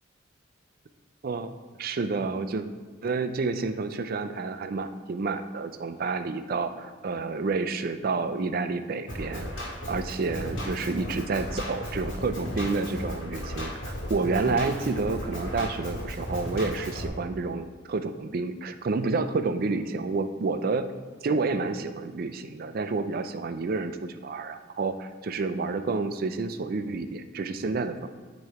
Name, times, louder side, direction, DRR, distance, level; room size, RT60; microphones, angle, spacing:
voice 1, 1.8-2.7 3.0-9.5 9.9-20.9 21.2-28.1, right 3 dB, 45° right, 9 dB, 0.4 m, -29 dB
Drum kit, 9.1-17.1, equal, 70° left, 2.0 m, -35 dB
9.2 x 3.1 x 4.7 m, 1.5 s
head